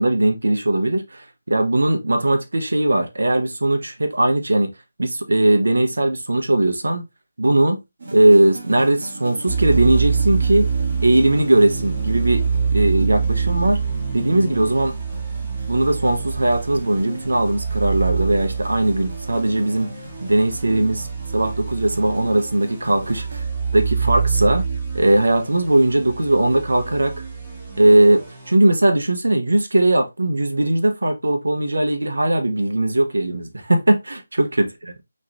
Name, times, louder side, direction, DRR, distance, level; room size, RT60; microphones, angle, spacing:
voice 1, 0.0-4.7 5.0-7.0 7.4-7.8 8.1-10.7 11.0-12.4 12.7-13.8 14.1-14.9 15.7-19.9 20.2-21.1 21.3-23.4 23.7-24.7 24.9-27.1 27.8-35.0, right 1 dB, 65° right, 1.0 m, -19 dB
sound 1, 8.0-23.4, right 2 dB, 45° right, 1.2 m, -40 dB
sound 2, 9.5-28.5, right 5 dB, 10° right, 1.3 m, -26 dB
4.9 x 3.2 x 2.7 m
figure-of-eight pair, 155°, 0 cm